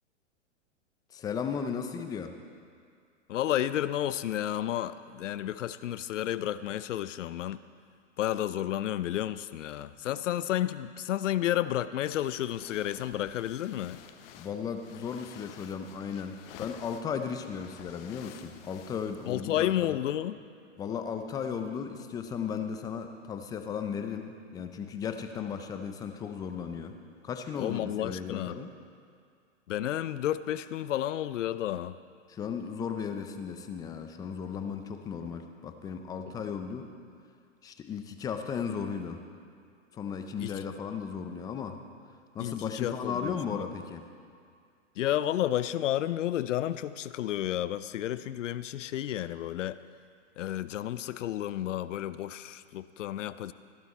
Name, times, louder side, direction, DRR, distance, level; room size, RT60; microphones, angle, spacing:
voice 1, 1.1-2.4 14.3-20.0 20.8-27.0 27.2-28.7 32.3-36.9 37.6-39.2 39.9-41.8 42.3-44.1, left 6 dB, 10° left, 7 dB, 0.3 m, -36 dB
voice 2, 3.3-7.6 8.2-14.0 19.3-20.4 27.6-28.6 29.7-31.9 40.4-40.5 42.4-43.6 45.0-49.8 50.4-53.5, left 12 dB, 80° left, 14 dB, 0.6 m, -31 dB
sound 1, 12.0-19.8, left 10 dB, 50° left, 0.9 m, -52 dB
14.5 x 11.5 x 4.2 m, 2.2 s
hypercardioid pair, 125°, 37 cm